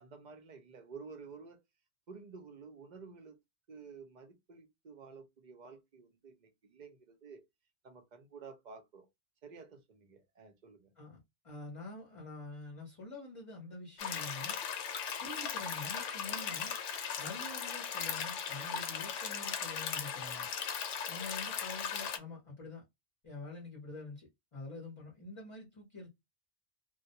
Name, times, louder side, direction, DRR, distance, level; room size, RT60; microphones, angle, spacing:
voice 1, 0.0-1.6 2.1-3.4 3.7-7.4 7.8-9.1 9.4-10.9, right 5 dB, 50° right, 0.6 m, -52 dB
voice 2, 11.4-14.5 15.2-16.7 17.2-20.5 21.1-22.8 23.2-26.1, left 3 dB, 35° left, 0.7 m, -46 dB
sound 1, 14.0-22.2, left 7 dB, 80° left, 0.9 m, -38 dB
2.2 x 2.1 x 2.7 m
omnidirectional pair, 1.2 m